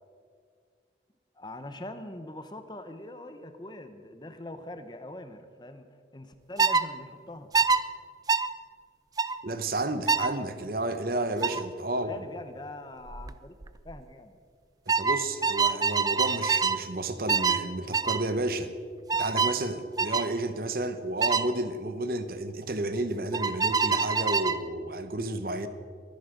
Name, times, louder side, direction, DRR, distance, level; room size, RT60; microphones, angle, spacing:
voice 1, 1.3-5.9 6.1-7.7 11.9-13.6 13.8-14.4, left 1 dB, 25° left, 9 dB, 0.9 m, -43 dB
sound 1, 6.6-6.9 7.5-7.8 8.3-8.5 9.2-9.4 10.1-10.3 11.4-11.6 13.1-13.3 13.6-14.0 14.9-16.8 17.3-17.6 17.9-18.2 19.1-19.6 20.0-20.3 21.2-21.5 23.3-24.6, right 5 dB, 20° right, 0.4 m, -25 dB
voice 2, 9.4-12.1 14.9-18.7 19.2-25.7, right 2 dB, 55° right, 10 dB, 1.0 m, -31 dB
23.0 x 10.5 x 5.1 m, 2.1 s
head